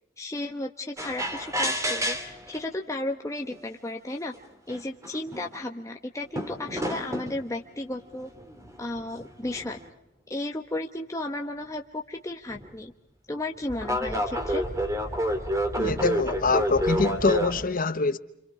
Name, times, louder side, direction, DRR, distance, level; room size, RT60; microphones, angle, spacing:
voice 1, 0.2-4.3 4.7-8.3 8.8-9.8 10.3-12.9 13.3-14.6, left 1 dB, 15° left, 1.0 m, -34 dB
sound 1, 1.0-2.6 3.5-3.6 4.3-4.4 4.7-5.6 6.4-7.4 8.3-9.9 12.5-12.7 13.7-17.6, equal, 15° right, 2.7 m, -29 dB
voice 2, 15.8-18.2, left 3 dB, 45° left, 1.1 m, -24 dB
30.0 x 26.0 x 4.8 m
head